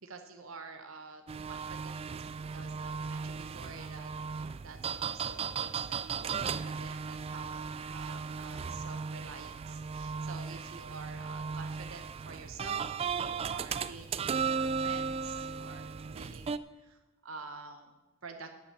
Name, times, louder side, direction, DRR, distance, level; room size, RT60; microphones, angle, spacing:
voice 1, 0.0-2.1 2.5-17.9 18.2-18.5, right 4 dB, 80° right, 6 dB, 1.0 m, -49 dB
sound 1, 1.3-16.6, right 6 dB, 30° right, 0.3 m, -36 dB
11.0 x 5.8 x 8.9 m, 1.1 s
head